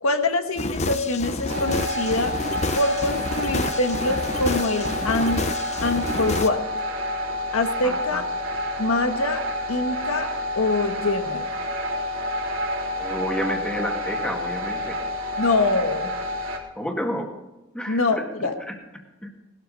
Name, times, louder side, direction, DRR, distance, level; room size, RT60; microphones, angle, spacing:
voice 1, 0.0-2.3 2.7-5.4 5.8-6.6 7.5-8.2 8.8-9.4 9.7-10.3 10.5-11.5 15.4-16.1 17.9-18.5, left 2 dB, 85° left, 7 dB, 1.4 m, -24 dB
sound 1, 0.6-6.5, left 2 dB, 30° left, 0.8 m, -29 dB
sound 2, 1.5-16.6, left 1 dB, 75° right, 3.1 m, -29 dB
voice 2, 7.8-8.2 13.0-15.0 16.8-17.3 17.7-18.3 18.7-18.8 19.2-19.3, equal, 5° left, 2 dB, 2.1 m, -30 dB
19.5 x 12.5 x 4.1 m, 1.0 s
head